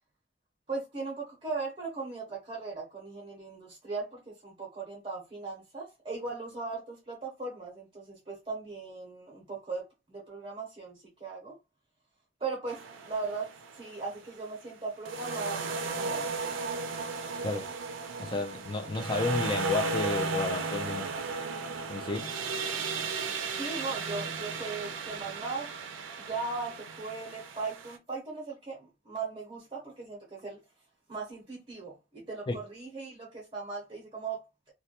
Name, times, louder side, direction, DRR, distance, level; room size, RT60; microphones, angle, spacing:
voice 1, 0.7-11.6 12.4-13.5 13.7-16.3 23.6-25.7 26.2-30.6 31.1-34.4, right 4 dB, 30° right, 0.7 m, -38 dB
sound 1, 12.7-14.1 15.1-28.0, right 4 dB, 80° right, 0.4 m, -35 dB
voice 2, 18.2-21.1 21.9-22.3 32.5-32.6, left 3 dB, 25° left, 0.4 m, -32 dB
2.2 x 2.1 x 2.8 m
head